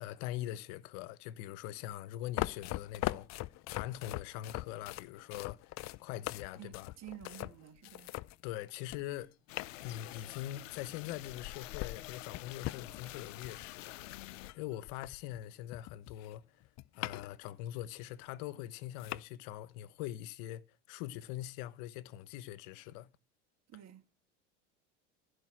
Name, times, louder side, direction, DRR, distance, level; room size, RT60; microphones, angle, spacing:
voice 1, 0.0-6.9 8.4-9.3 9.8-14.0 14.5-16.4 17.0-20.6 20.9-23.1, left 13 dB, 65° left, 1.1 m, -43 dB
sound 1, 2.3-9.2 9.6-10.5 11.2-15.4 15.7-17.5 17.8-17.9 18.6-18.7 19.0-19.2, left 18 dB, 45° left, 0.6 m, -41 dB
voice 2, 6.5-8.1 23.7-24.0, right 12 dB, 45° right, 1.9 m, -51 dB
sound 2, 9.5-14.5, left 17 dB, 90° left, 0.5 m, -48 dB
15.0 x 5.4 x 7.6 m
hypercardioid pair, 90°, 38 cm